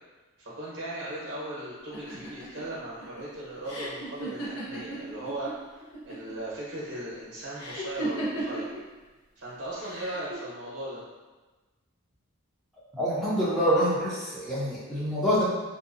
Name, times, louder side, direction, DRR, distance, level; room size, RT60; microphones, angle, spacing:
voice 1, 0.4-8.8 9.4-11.0, right 1 dB, 55° right, -7 dB, 0.8 m, -38 dB
sound 1, 1.9-5.5 5.8-6.5 7.6-8.8 9.8-10.3, right 1 dB, 80° left, 0.7 m, -35 dB
voice 2, 12.9-15.4, equal, ahead, -9 dB, 0.5 m, -26 dB
2.6 x 2.1 x 2.5 m, 1.2 s
head